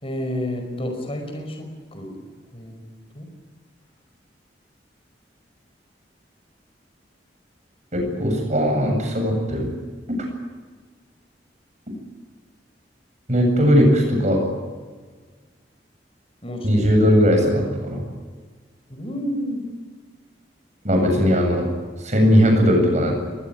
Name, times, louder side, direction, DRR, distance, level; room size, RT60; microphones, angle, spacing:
voice 1, 0.0-1.7 1.9-2.1 2.5-2.8 3.1-3.3 16.4-17.0 18.9-19.6, equal, 35° left, 3 dB, 5.3 m, -30 dB
voice 2, 7.9-9.7 13.3-14.4 16.6-18.0 20.8-21.7 22.0-23.1, equal, 40° right, 3 dB, 7.9 m, -18 dB
22.5 x 20.0 x 9.4 m, 1.5 s
head